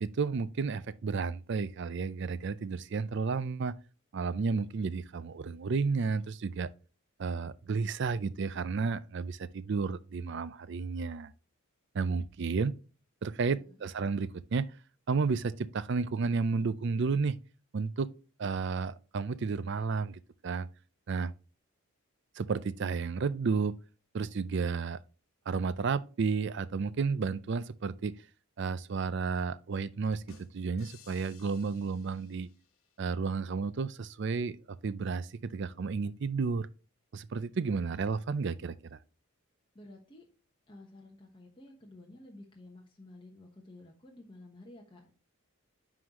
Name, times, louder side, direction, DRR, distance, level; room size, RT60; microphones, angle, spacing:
voice 1, 0.0-3.7 4.1-6.7 7.2-11.3 11.9-12.7 13.2-14.7 15.1-17.4 17.7-18.1 18.4-20.7 21.1-21.3 22.4-23.7 24.1-25.0 25.5-28.1 28.6-32.5 33.0-36.7 37.1-39.0, right 4 dB, 55° right, 0.4 m, -32 dB
voice 2, 13.4-13.8 39.7-40.2 40.7-45.1, left 1 dB, 25° left, 1.1 m, -52 dB
sound 1, 30.1-32.9, left 4 dB, 75° left, 1.1 m, -58 dB
9.4 x 3.9 x 2.9 m
head